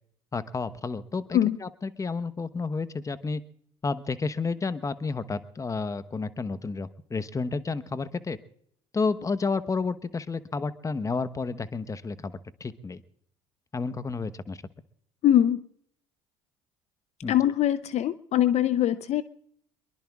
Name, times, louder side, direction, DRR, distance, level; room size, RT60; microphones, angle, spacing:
voice 1, 0.3-3.4 3.8-8.4 8.9-12.3 12.6-13.0 13.7-14.6 17.2-17.4, left 4 dB, 25° left, 14 dB, 1.1 m, -31 dB
voice 2, 15.2-15.6 17.3-19.2, left 11 dB, 50° left, 14 dB, 0.7 m, -22 dB
24.5 x 22.5 x 2.4 m, 0.67 s
hypercardioid pair, 65°, 14 cm